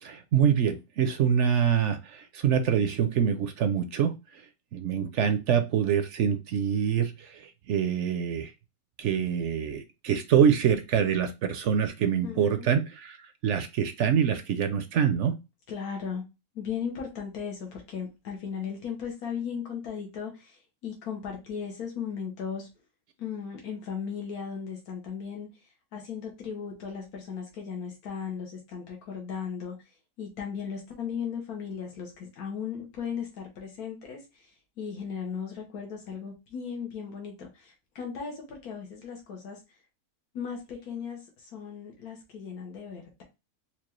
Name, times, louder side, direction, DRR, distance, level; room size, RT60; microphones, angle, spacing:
voice 1, 0.0-4.1 4.7-8.5 9.0-13.2 13.4-15.4, right 8 dB, 65° right, 8 dB, 0.7 m, -25 dB
voice 2, 12.2-12.7 15.7-16.2 16.5-22.7 23.2-29.8 30.2-39.6 40.3-43.2, left 7 dB, 85° left, 1 dB, 1.4 m, -37 dB
4.5 x 2.4 x 3.0 m, 0.26 s
omnidirectional pair, 1.5 m